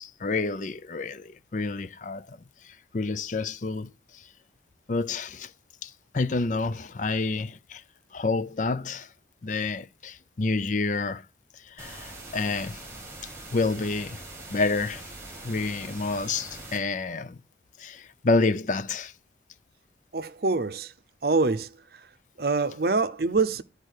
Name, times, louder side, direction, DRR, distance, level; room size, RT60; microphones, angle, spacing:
voice 1, 0.0-2.4 2.6-4.2 4.9-5.5 5.8-7.8 8.1-9.1 9.4-11.2 11.6-12.8 13.2-14.2 14.5-15.1 15.4-17.4 17.8-19.1, left 3 dB, 40° left, 0.5 m, -29 dB
sound 1, 11.8-16.8, right 2 dB, 15° right, 2.6 m, -42 dB
voice 2, 20.1-20.9 21.2-22.1 22.4-23.6, right 3 dB, 55° right, 0.7 m, -25 dB
11.0 x 4.8 x 6.4 m
head